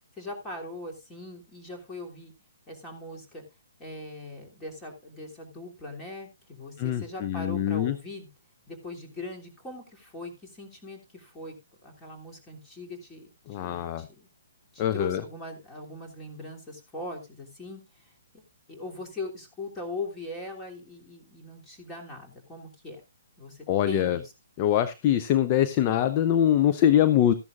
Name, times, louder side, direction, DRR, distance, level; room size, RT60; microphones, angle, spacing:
voice 1, 0.2-2.3 2.7-3.4 3.8-8.3 8.7-11.5 11.8-14.3 14.7-18.1 18.7-23.0 23.4-24.3, left 2 dB, 15° left, 1 dB, 3.1 m, -40 dB
voice 2, 6.8-7.9 13.5-14.1 14.8-15.2 23.7-24.2 24.6-27.3, left 11 dB, 35° left, 13 dB, 0.7 m, -23 dB
14.0 x 10.5 x 2.5 m, 0.25 s
figure-of-eight pair, 130°, 0 cm